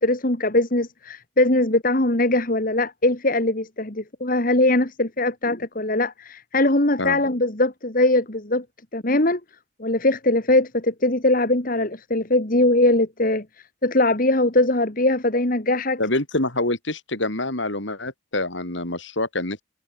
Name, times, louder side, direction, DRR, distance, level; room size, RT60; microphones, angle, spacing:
voice 1, 0.0-8.6 8.9-9.4 9.8-13.5 13.8-16.0, left 2 dB, 45° left, 2.2 m, -21 dB
voice 2, 16.0-19.6, left 2 dB, 70° left, 4.3 m, -26 dB
head